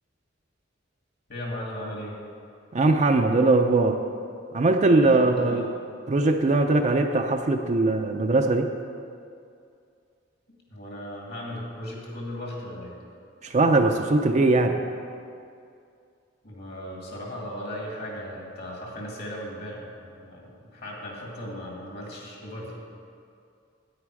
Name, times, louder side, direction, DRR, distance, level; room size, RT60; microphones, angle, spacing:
voice 1, 1.3-2.1 5.2-5.7 10.5-13.0 16.4-22.7, left 1 dB, 55° left, -2 dB, 2.3 m, -37 dB
voice 2, 2.7-4.0 4.5-5.7 6.1-8.7 13.4-14.8, right 2 dB, 40° right, 4 dB, 0.5 m, -21 dB
9.7 x 9.1 x 4.7 m, 2.4 s
head